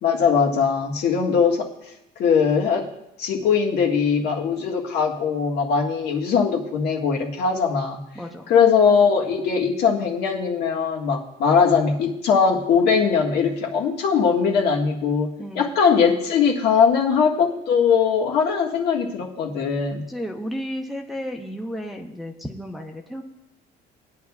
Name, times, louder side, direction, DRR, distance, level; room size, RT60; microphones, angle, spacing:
voice 1, 0.0-1.7 2.2-2.9 3.2-8.0 8.5-20.0, left 6 dB, 65° left, 0 dB, 1.8 m, -20 dB
voice 2, 8.1-8.5 15.4-15.7 20.1-23.2, equal, ahead, 1 dB, 0.8 m, -33 dB
19.5 x 9.9 x 2.4 m, 0.88 s
cardioid pair, 150°, 18 cm